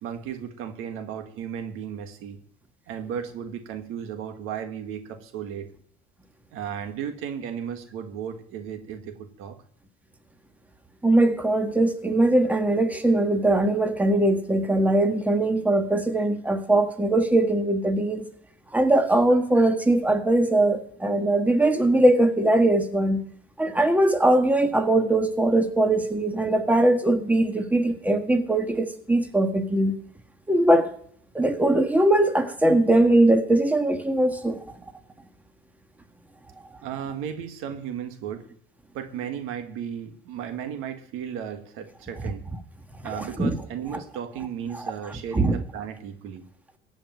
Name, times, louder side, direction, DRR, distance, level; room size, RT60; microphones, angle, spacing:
voice 1, 0.0-2.4 2.9-5.7 6.5-9.6 36.8-38.4 38.9-42.4 43.0-46.4, right 8 dB, 80° right, 8 dB, 1.6 m, -35 dB
voice 2, 11.0-18.2 18.7-23.2 23.6-29.9 30.5-30.9 31.3-34.6 43.1-43.6 44.7-44.9 45.3-45.6, right 1 dB, 5° right, 6 dB, 1.5 m, -21 dB
15.0 x 5.2 x 9.1 m, 0.62 s
supercardioid pair, 90°, 21 cm